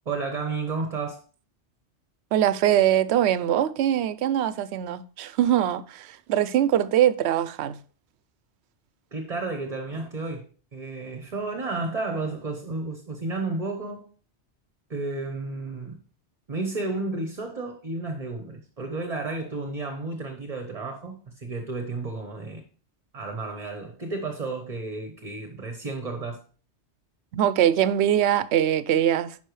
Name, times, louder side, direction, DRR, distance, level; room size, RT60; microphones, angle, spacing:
voice 1, 0.0-1.2 9.1-14.1 14.9-16.0 16.5-22.6 23.1-26.4, right 3 dB, 35° right, 1.0 m, -32 dB
voice 2, 2.3-7.8 27.3-29.4, right 11 dB, 75° right, 0.8 m, -22 dB
10.0 x 5.5 x 3.2 m
omnidirectional pair, 1.2 m